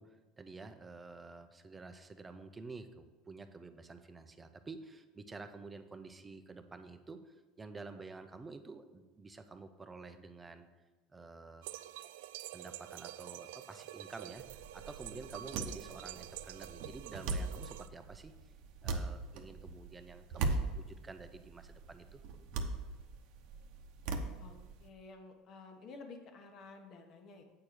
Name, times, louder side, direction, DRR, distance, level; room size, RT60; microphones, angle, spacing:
voice 1, 0.0-10.7 11.1-11.7 12.5-18.3 18.8-22.2, right 3 dB, 15° right, 8 dB, 0.7 m, -50 dB
sound 1, 11.6-17.9, right 14 dB, 90° right, 0.3 m, -47 dB
sound 2, 14.4-24.9, right 3 dB, 65° right, 0.9 m, -40 dB
voice 2, 24.4-27.4, left 3 dB, 45° left, 4 dB, 1.3 m, -52 dB
8.6 x 4.5 x 6.7 m, 1.2 s
supercardioid pair, 125°, 0 cm